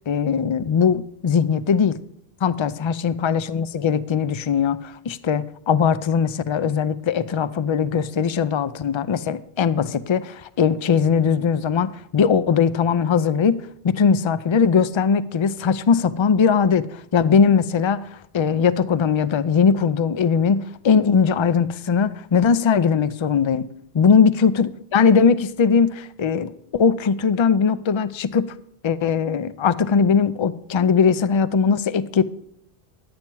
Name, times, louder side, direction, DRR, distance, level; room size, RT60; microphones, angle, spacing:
voice 1, 0.1-2.0 2.4-13.6 13.8-23.7 23.9-28.5 28.8-32.2, left 6 dB, 55° left, 15 dB, 0.3 m, -20 dB
10.5 x 8.6 x 4.6 m, 0.75 s
omnidirectional pair, 1.1 m